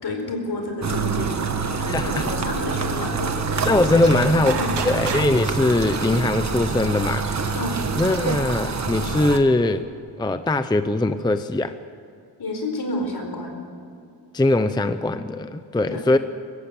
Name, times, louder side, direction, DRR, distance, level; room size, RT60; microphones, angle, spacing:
voice 1, 0.0-4.8 7.5-7.8 12.4-13.6 15.9-16.0, left 2 dB, 60° left, 3 dB, 4.6 m, -30 dB
sound 1, 0.8-9.4, right 4 dB, 40° right, 1.5 m, -26 dB
voice 2, 1.9-2.2 3.7-4.6 4.8-7.2 8.0-9.9 10.2-11.7 14.3-16.2, left 2 dB, 10° left, 10 dB, 0.5 m, -21 dB
sound 2, 3.8-8.5, right 6 dB, 70° right, 2.3 m, -33 dB
23.0 x 15.0 x 8.9 m, 2.5 s
wide cardioid pair, 145°, 43 cm